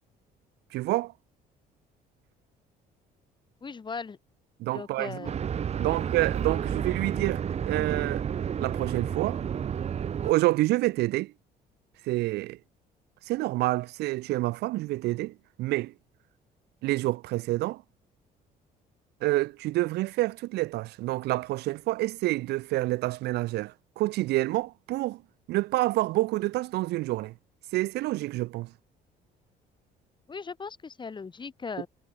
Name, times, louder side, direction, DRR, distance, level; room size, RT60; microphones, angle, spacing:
voice 1, 0.7-1.1 4.6-5.3 5.8-8.2 8.6-9.4 10.2-11.3 12.0-12.6 13.2-15.9 16.8-17.8 19.2-25.2 25.5-27.3 27.7-28.7, right 18 dB, 80° right, 0.7 m, -28 dB
voice 2, 3.6-4.2 4.7-5.3 5.8-6.0 30.3-31.9, left 5 dB, 25° left, 3.4 m, -38 dB
sound 1, 5.2-10.3, right 8 dB, 40° right, 1.1 m, -31 dB
cardioid pair, 110°, 17 cm